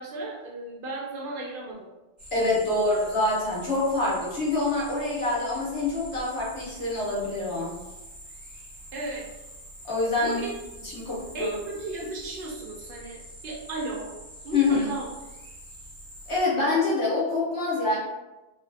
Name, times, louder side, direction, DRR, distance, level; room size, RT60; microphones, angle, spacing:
voice 1, 0.0-1.9 2.4-2.9 8.9-9.3 10.2-10.5 11.3-14.1 14.4-15.1, right 2 dB, 60° right, -2 dB, 0.7 m, -35 dB
sound 1, 2.2-16.4, right 1 dB, 15° right, 0.7 m, -46 dB
voice 2, 2.3-7.7 9.8-10.4 10.8-11.6 14.5-14.9 16.3-18.0, left 2 dB, 85° left, -6 dB, 1.3 m, -26 dB
2.7 x 2.4 x 2.6 m, 1.0 s
omnidirectional pair, 1.2 m